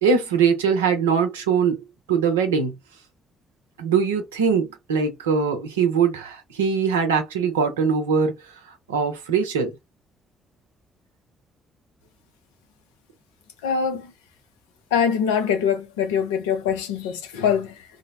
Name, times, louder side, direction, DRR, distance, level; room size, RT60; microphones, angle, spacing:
voice 1, 0.0-2.8 3.8-9.7, right 6 dB, 90° right, 0.6 m, -22 dB
voice 2, 13.6-14.1 14.9-17.8, left 7 dB, 85° left, 0.5 m, -23 dB
2.6 x 2.0 x 2.5 m
hypercardioid pair, 45°, 0 cm